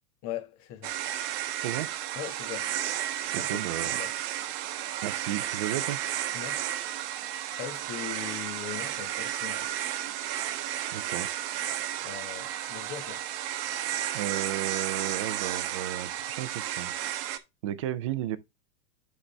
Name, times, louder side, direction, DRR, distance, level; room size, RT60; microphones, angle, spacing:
voice 1, 0.2-1.0 2.1-2.7 3.2-4.1 6.3-6.7 7.5-9.7 12.0-13.2, left 11 dB, 35° left, 1.5 m, -40 dB
sound 1, 0.8-17.4, right 12 dB, 40° right, 1.0 m, -33 dB
voice 2, 3.3-4.0 5.0-6.0 10.9-11.3 14.1-16.9 17.6-18.4, right 12 dB, 25° right, 0.3 m, -33 dB
9.7 x 4.1 x 3.3 m
hypercardioid pair, 125°, 46 cm